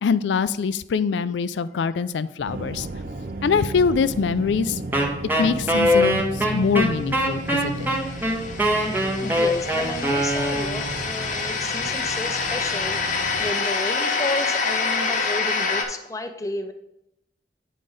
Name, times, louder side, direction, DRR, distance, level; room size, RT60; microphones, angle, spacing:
voice 1, 0.0-2.9 3.4-4.8 5.4-7.9, left 5 dB, 85° left, 15 dB, 0.4 m, -23 dB
sound 1, 2.4-13.5, right 2 dB, 55° right, 0.5 m, -34 dB
Wind instrument woodwind instrument, 4.9-11.0, equal, 10° right, 0.9 m, -22 dB
sound 2, 7.4-15.8, left 4 dB, 45° left, 0.8 m, -27 dB
voice 2, 9.2-16.7, left 2 dB, 20° left, 7 dB, 0.5 m, -32 dB
8.6 x 5.0 x 3.9 m, 0.86 s
head